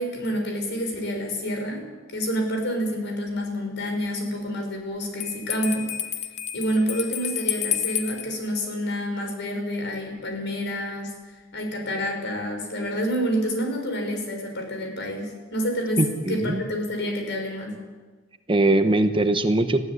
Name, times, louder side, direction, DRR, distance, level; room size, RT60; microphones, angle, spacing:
voice 1, 0.0-1.8 2.1-5.9 6.5-16.0 16.3-17.7, equal, 60° left, 3 dB, 6.1 m, -28 dB
Bell, 5.2-8.3, left 10 dB, 35° left, 1.2 m, -30 dB
voice 2, 16.0-16.6 18.5-19.8, right 2 dB, 25° right, 8 dB, 1.1 m, -21 dB
20.5 x 15.0 x 9.6 m, 1.3 s
head